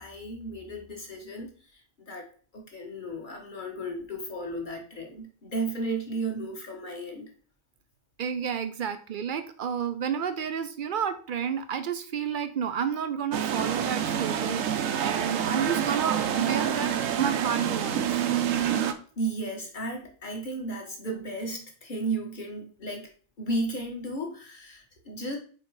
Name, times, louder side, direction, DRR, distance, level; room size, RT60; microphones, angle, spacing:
voice 1, 0.0-2.2 2.5-7.3 19.2-23.1 23.4-25.4, right 2 dB, 40° left, 1 dB, 1.5 m, -34 dB
voice 2, 8.2-18.3, right 8 dB, 65° right, 10 dB, 0.5 m, -30 dB
sound 1, 13.3-18.9, right 9 dB, 90° right, 1.0 m, -27 dB
4.6 x 4.6 x 4.7 m, 0.42 s
omnidirectional pair, 1.3 m